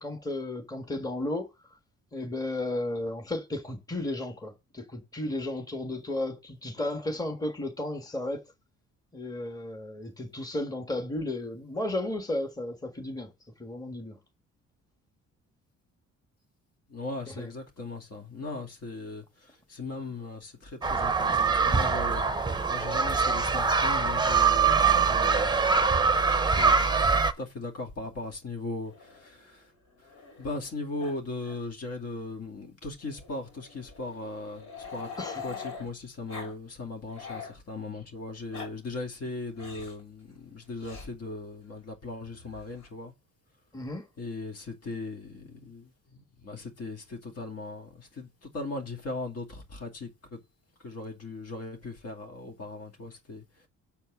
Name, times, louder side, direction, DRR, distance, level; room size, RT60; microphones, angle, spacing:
voice 1, 0.0-1.5 2.1-8.4 9.1-13.3 13.6-14.2 17.4-17.5 35.2-35.4 43.7-44.1, left 1 dB, 10° left, 1.6 m, -33 dB
voice 2, 16.9-22.2 22.7-29.7 30.0-35.1 35.4-43.1 44.2-50.4 50.8-53.4, left 2 dB, 55° left, 2.5 m, -38 dB
sound 1, 20.8-27.3, right 5 dB, 15° right, 0.7 m, -23 dB
Growling, 28.8-30.7 31.0-31.2 31.4-31.6 31.9-32.0 33.0-35.9 36.3-36.5 36.9-37.6 38.3-38.7 39.6-40.0 40.8-41.1 42.2-42.9, left 5 dB, 80° left, 6.2 m, -44 dB
7.0 x 4.5 x 5.9 m
cardioid pair, 90°, 30 cm